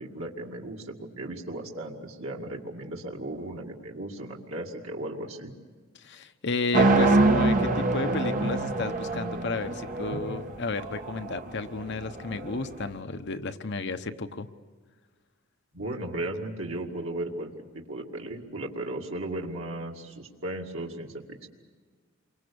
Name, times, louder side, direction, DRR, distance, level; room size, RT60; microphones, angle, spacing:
voice 1, 0.0-5.5 15.7-21.5, right 1 dB, 80° right, -1 dB, 2.3 m, -36 dB
voice 2, 5.9-14.5, left 3 dB, 60° left, 8 dB, 1.0 m, -32 dB
sound 1, 6.7-12.8, right 2 dB, 40° right, 1.4 m, -25 dB
28.5 x 24.0 x 7.0 m, 1.5 s
head